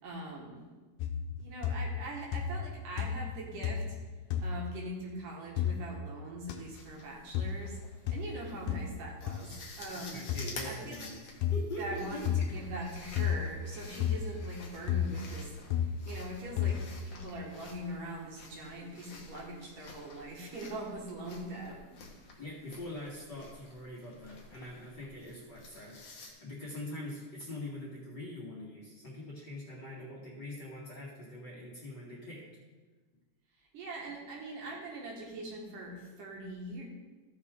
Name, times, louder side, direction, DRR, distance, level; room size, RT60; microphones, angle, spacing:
voice 1, 0.0-0.6 1.4-4.0 4.4-7.8 8.1-10.2 10.6-11.1 11.8-16.8 17.1-22.0 33.7-36.8, right 1 dB, 75° right, -2 dB, 3.3 m, -42 dB
sound 1, 1.0-1.4 1.6-2.1 2.3-2.7 3.0-3.3 3.6-4.0 4.3-4.5 5.6-5.7 6.5-6.6 7.3-7.6 8.1-8.2 8.7-8.9 9.3-9.4 10.3-10.5 11.4-11.6 12.3-12.6 13.2-13.4 14.0-14.2 14.9-15.2 15.7-15.9 16.6-16.8, left 9 dB, 75° left, 2.2 m, -31 dB
sound 2, 6.5-26.3, left 3 dB, 55° left, 1.4 m, -51 dB
voice 2, 9.9-12.2 22.4-32.4, left 1 dB, 35° left, -6 dB, 2.4 m, -43 dB
14.5 x 6.4 x 3.7 m, 1.3 s
omnidirectional pair, 3.8 m